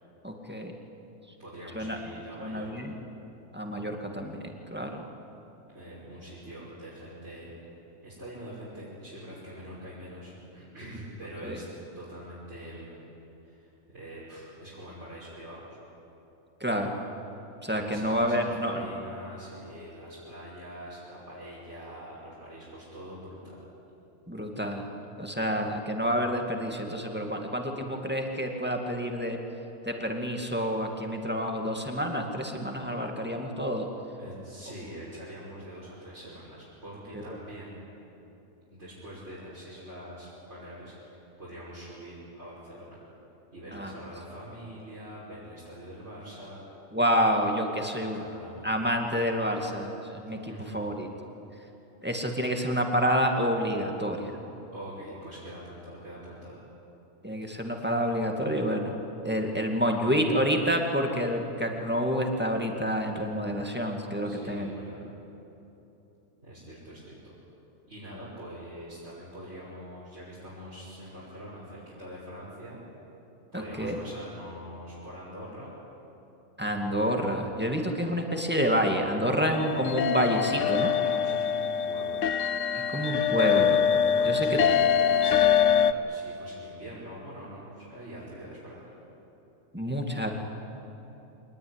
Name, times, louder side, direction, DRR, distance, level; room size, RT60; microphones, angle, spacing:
voice 1, 0.2-0.7 1.7-2.0 2.4-2.9 3.5-5.0 11.4-11.6 16.6-16.9 17.6-18.9 24.3-24.9 25.2-29.4 29.8-33.9 37.1-37.4 43.7-43.9 46.9-48.2 48.6-51.1 52.0-54.3 57.2-59.0 59.2-64.7 73.5-74.0 76.6-80.9 82.7-83.9 84.2-84.6 89.7-90.3, equal, 10° right, 2 dB, 2.3 m, -28 dB
voice 2, 1.4-2.9 5.7-7.5 8.0-11.7 11.9-13.0 13.4-15.8 17.7-23.6 34.2-37.8 38.7-43.0 43.5-46.6 48.1-48.6 50.5-50.8 54.7-56.6 64.2-65.0 66.4-67.3 67.9-72.8 73.5-75.7 78.1-78.2 81.0-82.3 84.1-84.7 85.1-88.9, equal, 60° right, -9 dB, 6.3 m, -44 dB
sound 1, 79.5-85.9, left 8 dB, 75° left, 1.1 m, -24 dB
25.0 x 19.5 x 10.0 m, 3.0 s
omnidirectional pair, 1.3 m